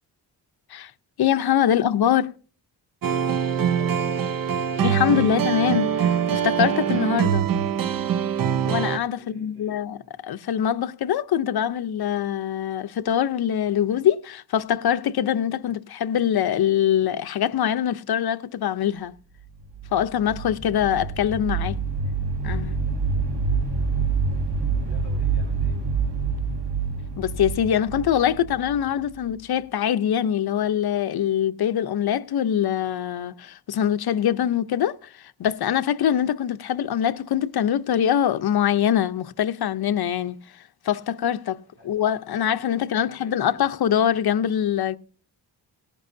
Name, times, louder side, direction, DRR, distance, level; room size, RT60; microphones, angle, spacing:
voice 1, 1.2-2.3 4.8-7.5 8.6-10.0 10.2-19.1 19.9-21.8 22.4-22.8 27.2-40.4 40.8-45.0, left 9 dB, 70° left, 0.7 m, -23 dB
sound 1, 3.0-9.0, right 8 dB, 60° right, 0.8 m, -23 dB
voice 2, 3.4-4.6 9.2-9.8 24.7-25.8 41.8-41.9 42.9-43.7, right 3 dB, 30° right, 4.4 m, -48 dB
sound 2, 19.5-29.4, right 4 dB, 80° right, 2.0 m, -27 dB
18.5 x 11.0 x 2.7 m
wide cardioid pair, 155°, 39 cm